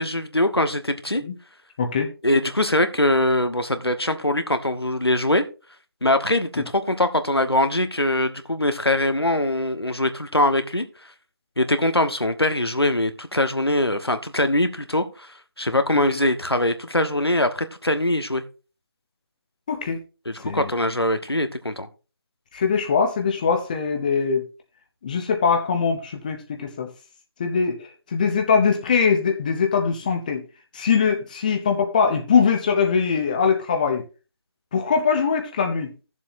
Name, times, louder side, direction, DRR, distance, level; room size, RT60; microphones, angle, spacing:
voice 1, 0.0-1.2 2.2-5.4 6.0-10.9 11.6-18.4 20.2-21.9, left 1 dB, 90° left, 1.3 m, -22 dB
voice 2, 1.8-2.1 19.7-20.0 20.4-20.7 22.5-24.4 25.0-26.9 27.4-27.8 28.1-30.4 30.7-34.0 34.7-35.9, left 6 dB, 20° left, 0.9 m, -22 dB
15.5 x 7.3 x 2.7 m
figure-of-eight pair, 160°, 13 cm